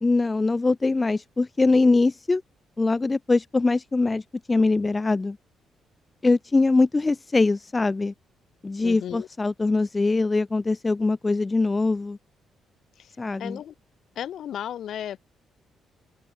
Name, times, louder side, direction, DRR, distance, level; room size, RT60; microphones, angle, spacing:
voice 1, 0.0-2.4 2.8-5.4 6.2-8.1 8.6-12.2 13.2-13.6, left 3 dB, 20° left, 0.9 m, -22 dB
voice 2, 8.8-9.3 13.0-13.1 13.4-13.7 14.2-15.2, left 10 dB, 70° left, 2.9 m, -34 dB
open air
cardioid pair, 90°, 0 cm